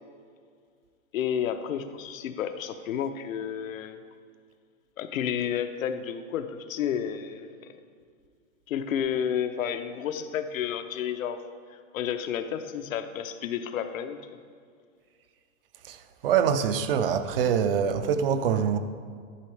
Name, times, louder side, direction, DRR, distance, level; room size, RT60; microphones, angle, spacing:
voice 1, 1.1-4.0 5.0-7.7 8.7-11.4 11.7-14.2, left 8 dB, 80° left, 9 dB, 0.8 m, -31 dB
voice 2, 16.2-18.8, right 7 dB, 45° right, 10 dB, 0.5 m, -24 dB
11.5 x 7.8 x 3.3 m, 2.1 s
supercardioid pair, 165°, 39 cm